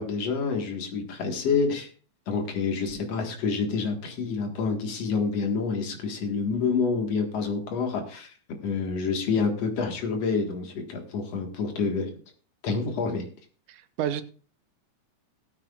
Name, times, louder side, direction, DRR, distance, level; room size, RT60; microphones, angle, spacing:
voice 1, 0.0-1.9 2.3-8.3 8.6-12.1 12.6-13.2, left 5 dB, 60° left, 3 dB, 2.8 m, -28 dB
voice 2, 13.7-14.2, right 10 dB, 90° right, 9 dB, 2.4 m, -30 dB
18.5 x 8.8 x 2.5 m, 0.41 s
omnidirectional pair, 3.4 m